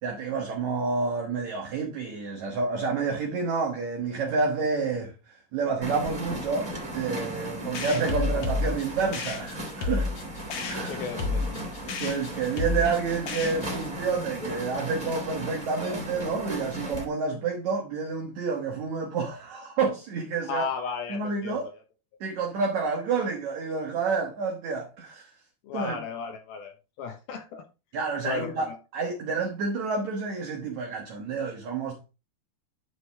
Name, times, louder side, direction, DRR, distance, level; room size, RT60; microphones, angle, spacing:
voice 1, 0.0-10.1 10.7-11.0 12.0-20.6 21.1-21.7 22.2-25.3 25.7-26.0 27.9-32.0, right 4 dB, 60° right, 2.2 m, -29 dB
sound 1, 5.8-17.0, equal, 10° right, 2.1 m, -36 dB
sound 2, 7.8-13.9, left 3 dB, 55° left, 2.3 m, -31 dB
voice 2, 10.9-11.6 20.5-21.6 25.6-27.6 28.2-28.8, left 6 dB, 75° left, 2.9 m, -35 dB
11.0 x 5.0 x 3.5 m
omnidirectional pair, 4.5 m